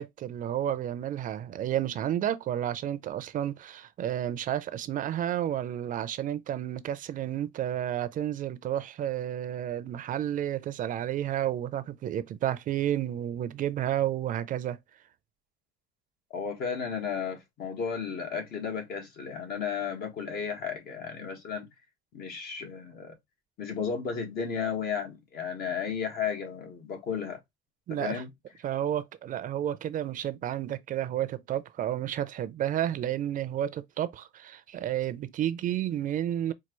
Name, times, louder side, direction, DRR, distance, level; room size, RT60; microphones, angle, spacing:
voice 1, 0.0-14.8 27.9-28.2 28.6-36.5, right 11 dB, 50° right, 0.5 m, -31 dB
voice 2, 16.3-21.7 22.1-23.2 23.6-27.4 28.0-28.3, left 6 dB, 65° left, 1.6 m, -33 dB
4.5 x 2.3 x 3.0 m
cardioid pair, 110°, 17 cm